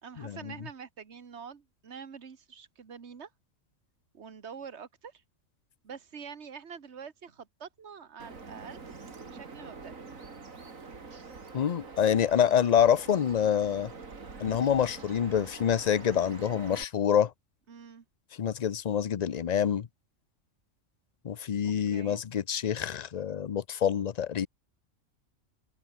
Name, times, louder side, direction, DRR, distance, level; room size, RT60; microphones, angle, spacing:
voice 1, 0.0-3.3 4.1-5.2 5.8-8.9 9.2-10.0 17.7-18.0 21.6-22.2, right 6 dB, 55° right, 1.8 m, -46 dB
Bird vocalization bird call bird song, 8.2-16.8, right 4 dB, 90° right, 3.0 m, -45 dB
voice 2, 11.5-13.9 14.4-17.3 18.4-19.9 21.2-24.5, left 8 dB, 45° left, 0.5 m, -26 dB
open air
omnidirectional pair, 1.4 m